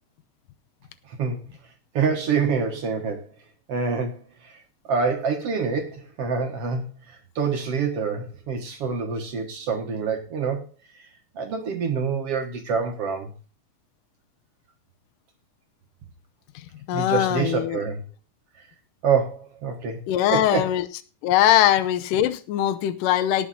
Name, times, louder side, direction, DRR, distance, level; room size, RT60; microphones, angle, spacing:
voice 1, 1.9-3.3 3.7-4.5 4.9-10.6 11.4-13.3 16.9-18.0 19.0-20.0 20.3-20.7, right 5 dB, 55° right, 5 dB, 2.0 m, -26 dB
voice 2, 16.9-17.8 20.1-20.9 21.2-23.5, left 12 dB, 80° left, 9 dB, 2.4 m, -21 dB
18.0 x 6.3 x 4.2 m, 0.33 s
omnidirectional pair, 3.9 m